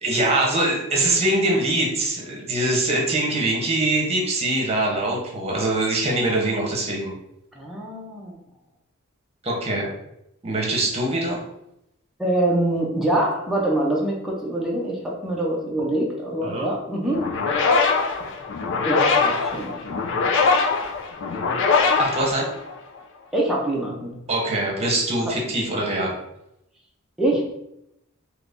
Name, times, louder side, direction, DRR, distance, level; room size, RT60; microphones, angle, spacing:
voice 1, 0.0-7.1 9.4-9.9 10.4-11.4 16.4-16.7 22.0-22.5 24.3-26.1, right 2 dB, 30° right, -2 dB, 0.9 m, -23 dB
voice 2, 7.6-8.3 12.2-17.2 18.8-19.8 23.3-24.1 27.2-27.5, right 1 dB, ahead, -4 dB, 0.6 m, -24 dB
sound 1, 17.1-23.0, left 4 dB, 60° left, 0.5 m, -22 dB
2.9 x 2.7 x 3.5 m, 0.82 s
head